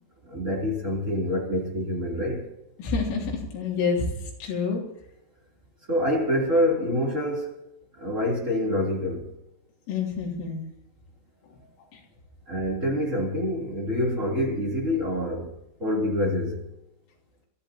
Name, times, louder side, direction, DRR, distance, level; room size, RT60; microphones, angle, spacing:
voice 1, 0.2-2.5 5.9-7.5 8.0-9.3 12.5-15.5 15.8-16.6, left 1 dB, 20° right, -3 dB, 3.1 m, -26 dB
voice 2, 2.8-4.8 9.9-10.6, left 5 dB, 85° left, -2 dB, 5.7 m, -28 dB
29.5 x 14.0 x 3.0 m, 0.88 s
omnidirectional pair, 5.6 m